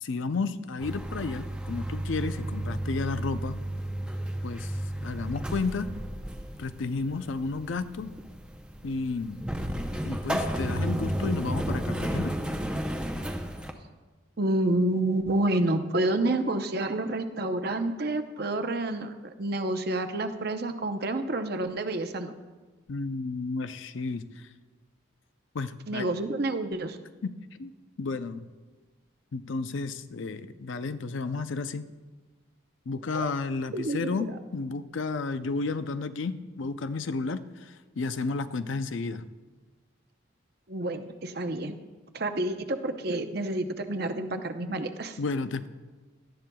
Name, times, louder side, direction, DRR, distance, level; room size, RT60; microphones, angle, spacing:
voice 1, 0.0-3.6 4.4-4.8 5.0-5.9 6.6-8.1 8.8-9.5 10.0-12.4 22.9-24.4 25.5-26.1 27.2-27.3 27.6-27.7 28.0-28.5 29.3-31.9 32.9-39.3 44.3-44.8 45.2-45.7, left 3 dB, 70° left, 11 dB, 0.5 m, -32 dB
sound 1, 0.8-13.7, right 1 dB, 5° right, 0.6 m, -33 dB
voice 2, 14.4-22.3 25.9-27.0 33.1-33.3 33.7-34.3 40.7-41.8 42.1-45.2, right 2 dB, 50° right, 7 dB, 0.7 m, -29 dB
18.0 x 12.5 x 2.3 m, 1.3 s
head